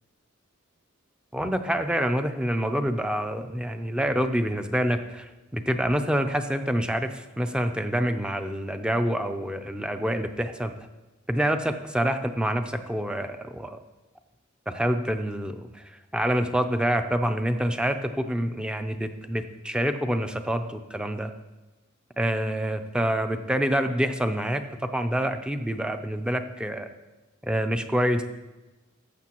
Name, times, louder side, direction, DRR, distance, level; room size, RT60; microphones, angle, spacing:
voice 1, 1.3-10.7 11.3-13.8 14.7-15.8 16.1-21.3 22.2-24.6 24.9-26.9 27.4-28.3, equal, 5° right, 7 dB, 0.4 m, -27 dB
14.5 x 6.9 x 3.0 m, 1.1 s
head